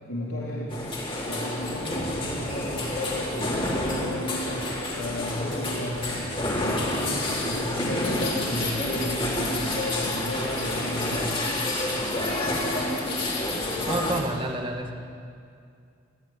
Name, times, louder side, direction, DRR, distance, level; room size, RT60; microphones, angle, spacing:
voice 1, 0.1-0.8 1.2-11.3, left 1 dB, 85° left, -5 dB, 4.1 m, -33 dB
sound 1, 0.7-14.2, left 1 dB, 25° left, 3.7 m, -28 dB
voice 2, 13.9-14.9, right 1 dB, 25° right, 3 dB, 2.0 m, -29 dB
28.5 x 15.5 x 9.6 m, 2.4 s
head